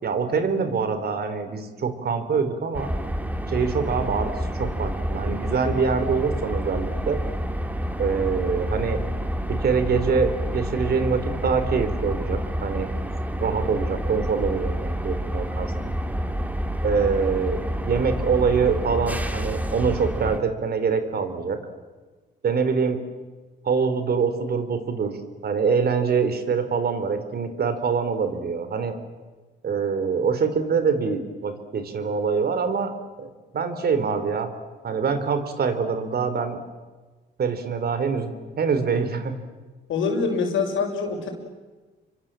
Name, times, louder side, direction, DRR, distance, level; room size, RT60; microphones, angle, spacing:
voice 1, 0.0-2.9 3.5-7.2 8.0-9.0 9.5-12.9 13.4-15.7 16.8-21.6 22.4-23.0 23.6-25.2 25.4-28.9 29.6-32.9 33.2-34.5 34.8-36.6 37.4-39.3, right 5 dB, 50° right, 9 dB, 3.7 m, -24 dB
sound 1, 2.7-20.4, equal, 10° right, 2.5 m, -28 dB
voice 2, 39.9-41.3, left 4 dB, 75° left, 3 dB, 6.3 m, -24 dB
29.5 x 24.5 x 7.6 m, 1.3 s
cardioid pair, 90°, 20 cm